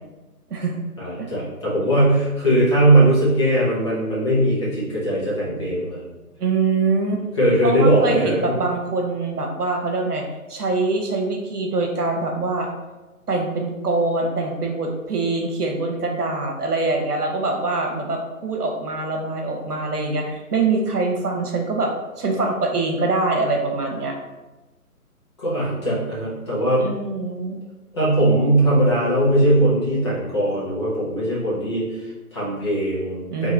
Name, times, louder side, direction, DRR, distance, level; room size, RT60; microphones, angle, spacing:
voice 1, 1.0-6.0 7.3-8.5 25.4-26.9 27.9-33.5, right 1 dB, 20° left, -9 dB, 0.8 m, -20 dB
voice 2, 6.4-7.2 7.6-10.2 10.5-12.7 13.3-24.2 26.8-27.6 33.3-33.5, right 3 dB, 85° right, 2 dB, 1.1 m, -24 dB
3.1 x 3.0 x 3.9 m, 1.1 s
figure-of-eight pair, 155°, 45 cm